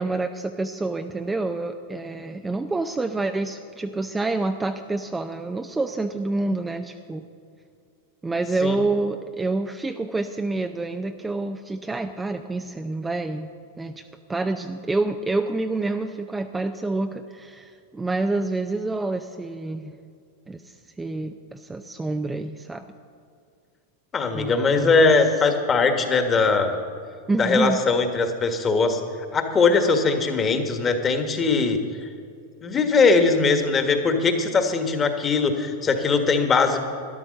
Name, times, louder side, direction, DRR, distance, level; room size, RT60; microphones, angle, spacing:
voice 1, 0.0-7.2 8.2-13.5 13.8-14.0 14.3-19.9 20.5-22.9 24.3-25.0 27.3-27.8, right 2 dB, 10° right, 6 dB, 0.6 m, -27 dB
voice 2, 24.1-26.8 27.4-29.0 29.3-32.1 32.6-36.8, left 4 dB, 25° left, 6 dB, 1.6 m, -20 dB
12.5 x 11.0 x 6.6 m, 2.4 s
hypercardioid pair, 105°, 0 cm